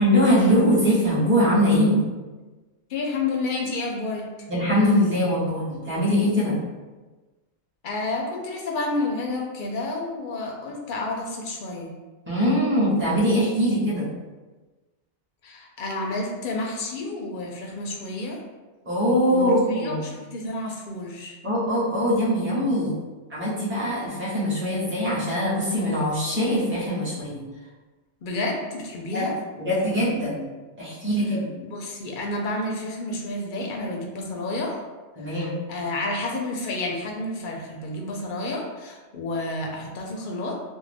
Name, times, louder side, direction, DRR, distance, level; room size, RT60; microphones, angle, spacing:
voice 1, 0.0-2.0 4.5-6.6 12.3-14.1 18.8-20.0 21.4-23.0 23.3-27.4 29.1-29.3 29.6-30.5 30.8-31.5 35.2-35.5, equal, 10° right, -9 dB, 0.8 m, -22 dB
voice 2, 2.9-4.2 7.8-11.9 15.4-18.4 19.3-21.4 28.2-29.3 31.6-34.8 35.2-40.6, left 2 dB, 55° left, 0 dB, 0.6 m, -30 dB
2.5 x 2.1 x 3.3 m, 1.2 s
omnidirectional pair, 1.2 m